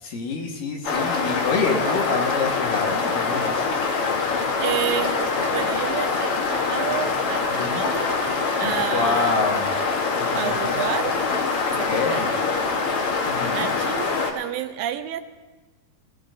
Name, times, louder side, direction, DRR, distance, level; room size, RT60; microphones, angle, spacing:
voice 1, 0.0-3.8 7.5-7.8 8.6-9.7 10.2-10.8 11.8-12.3 13.3-13.7, left 4 dB, 75° left, 0 dB, 3.2 m, -27 dB
sound 1, 0.8-14.3, left 4 dB, 55° left, 1.7 m, -24 dB
voice 2, 4.5-6.3 6.7-8.1 8.6-9.4 10.4-11.2 11.8-12.8 13.5-15.2, right 11 dB, 85° right, 8 dB, 2.4 m, -30 dB
21.0 x 16.0 x 2.6 m, 1.2 s
omnidirectional pair, 4.0 m